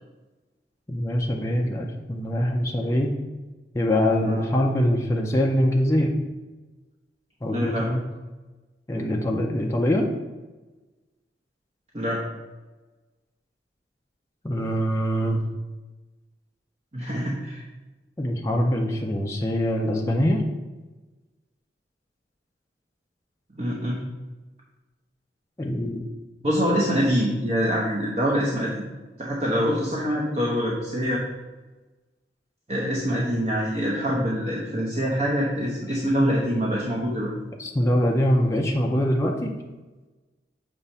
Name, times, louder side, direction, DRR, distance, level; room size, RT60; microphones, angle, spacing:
voice 1, 0.9-3.1 3.7-6.1 7.4-8.0 8.9-10.1 14.4-15.4 18.2-20.4 25.6-26.0 37.6-39.5, equal, 15° left, 0 dB, 0.5 m, -23 dB
voice 2, 7.5-7.9 11.9-12.2 16.9-17.6 23.5-24.0 26.4-28.8 29.2-31.2 32.7-37.3, equal, 35° right, -4 dB, 0.9 m, -25 dB
6.9 x 3.0 x 5.5 m, 1.2 s
head